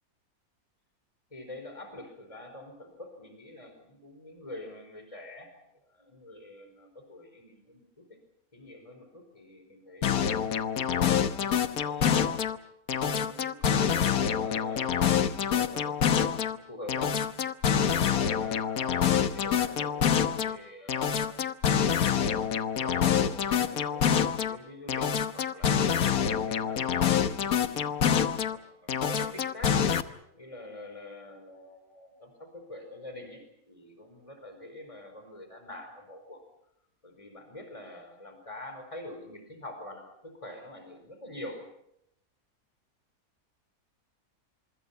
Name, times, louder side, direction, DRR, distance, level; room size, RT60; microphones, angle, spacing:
voice 1, 1.3-5.5 5.8-8.2 8.5-12.3 12.9-17.1 17.7-21.4 22.1-27.8 28.5-29.8 30.3-36.4 37.0-41.6, left 1 dB, 20° left, 6 dB, 4.8 m, -45 dB
sound 1, 10.0-12.6 12.9-16.6 16.9-20.6 20.9-24.6 24.9-28.6 28.9-30.0, left 8 dB, 80° left, 1.6 m, -26 dB
26.5 x 25.0 x 5.8 m, 0.78 s
omnidirectional pair, 1.5 m